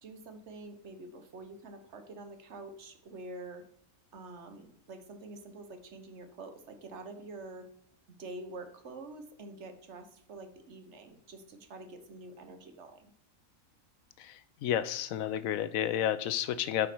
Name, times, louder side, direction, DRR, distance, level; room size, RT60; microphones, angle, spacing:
voice 1, 0.0-3.7 4.1-7.7 8.1-13.1, right 2 dB, 60° right, 7 dB, 1.2 m, -47 dB
voice 2, 14.2-16.9, left 10 dB, 80° left, 14 dB, 1.0 m, -31 dB
8.5 x 5.1 x 4.5 m, 0.63 s
omnidirectional pair, 1.4 m